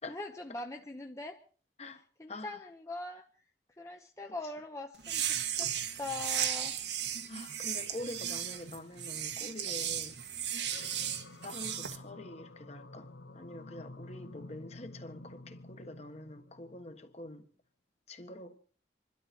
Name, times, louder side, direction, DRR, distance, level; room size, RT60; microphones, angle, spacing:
voice 1, 0.1-1.4 2.2-3.3 3.8-5.7 6.0-6.8, left 2 dB, 15° left, 0.9 m, -42 dB
voice 2, 1.8-2.6 7.3-10.2 10.5-11.0 11.4-13.1 13.3-17.5 18.1-18.6, left 1 dB, 40° left, 1.5 m, -46 dB
sound 1, 5.0-12.0, right 9 dB, 80° right, 1.7 m, -35 dB
sound 2, 10.6-17.3, left 2 dB, 90° left, 1.0 m, -50 dB
26.0 x 12.5 x 4.5 m
head